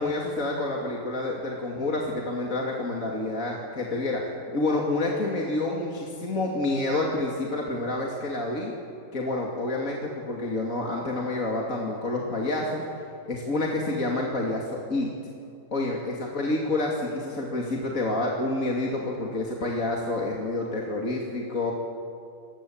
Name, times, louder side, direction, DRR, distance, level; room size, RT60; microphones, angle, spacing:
voice 1, 0.0-4.2 4.5-8.7 9.1-12.8 13.3-15.1 15.7-21.7, left 2 dB, 40° left, -1 dB, 2.9 m, -28 dB
26.0 x 21.0 x 8.8 m, 2.4 s
omnidirectional pair, 2.2 m